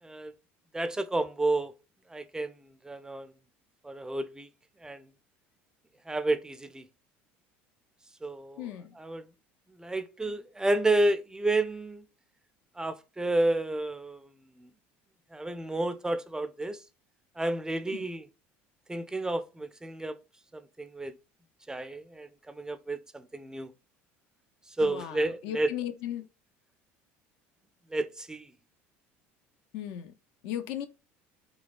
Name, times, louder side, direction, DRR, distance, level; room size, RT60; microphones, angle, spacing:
voice 1, 0.7-1.7 2.1-2.5 2.8-3.3 3.8-4.5 4.8-5.0 6.1-6.9 8.2-8.7 9.0-9.2 9.8-12.1 12.8-14.3 14.6-14.7 15.3-16.8 17.4-18.3 18.9-20.1 20.8-21.1 21.7-23.7 24.8-25.7 27.9-28.4, right 2 dB, 10° right, 0.3 m, -30 dB
voice 2, 8.6-8.9 17.9-18.1 24.8-26.2 29.7-30.1 30.4-30.9, left 11 dB, 70° left, 0.5 m, -36 dB
3.9 x 2.2 x 2.4 m
hypercardioid pair, 75°, 6 cm